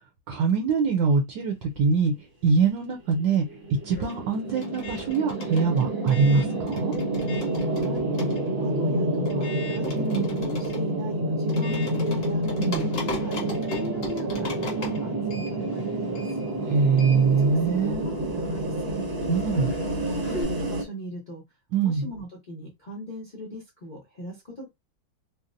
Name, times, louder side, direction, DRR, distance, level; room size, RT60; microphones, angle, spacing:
voice 1, 0.3-2.1 2.4-3.4 3.8-6.9 9.9-10.3 12.4-12.9 16.7-18.1 19.3-19.7 21.7-22.1, right 5 dB, 70° right, 1.2 m, -23 dB
sound 1, 1.6-2.9 3.1-20.4, left 3 dB, 50° left, 1.2 m, -39 dB
sound 2, 3.1-20.8, right 1 dB, 50° right, 0.7 m, -28 dB
voice 2, 7.6-8.1 8.5-12.4 13.0-16.3 17.2-19.1 19.5-21.4 21.8-24.7, equal, 75° left, 0.4 m, -39 dB
4.0 x 2.1 x 2.5 m
omnidirectional pair, 2.3 m